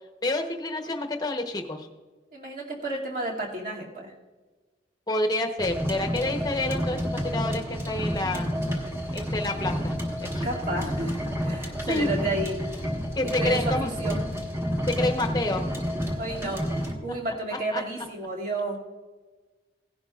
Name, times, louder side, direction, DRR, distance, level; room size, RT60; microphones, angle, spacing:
voice 1, 0.2-1.9 5.1-8.5 9.1-10.0 10.3-10.5 11.9-12.1 13.2-13.9 14.9-15.7 17.7-17.8, left 2 dB, 20° left, 4 dB, 0.9 m, -28 dB
voice 2, 2.3-4.1 10.4-12.6 13.3-14.3 16.2-18.8, right 2 dB, 50° right, -3 dB, 2.5 m, -31 dB
sound 1, 5.6-16.9, equal, 15° right, 1.4 m, -30 dB
17.0 x 11.0 x 2.4 m, 1.3 s
head